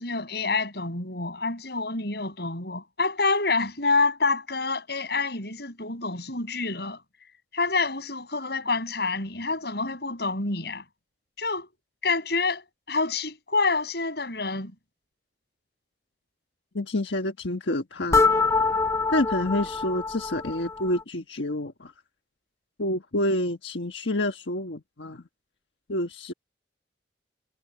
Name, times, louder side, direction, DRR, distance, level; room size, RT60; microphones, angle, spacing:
voice 1, 0.0-7.0 7.5-10.8 11.4-11.7 12.0-14.7, left 3 dB, 65° left, 7.9 m, -27 dB
voice 2, 16.7-18.3 19.1-21.9 22.8-25.2 25.9-26.3, left 1 dB, 85° left, 1.4 m, -28 dB
sound 1, 18.1-21.0, left 4 dB, 15° left, 0.4 m, -25 dB
head